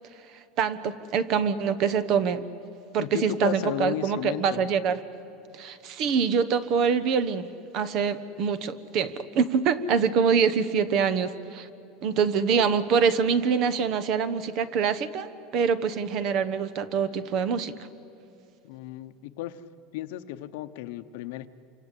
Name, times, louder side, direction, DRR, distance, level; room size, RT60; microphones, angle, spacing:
voice 1, 0.6-2.5 2.9-5.0 5.5-7.5 7.7-11.7 12.0-17.7, right 6 dB, 40° right, 14 dB, 1.1 m, -25 dB
voice 2, 3.0-4.6 18.6-19.6 19.9-21.5, left 13 dB, 65° left, 11 dB, 1.0 m, -34 dB
27.5 x 25.5 x 8.5 m, 2.8 s
supercardioid pair, 165°, 0 cm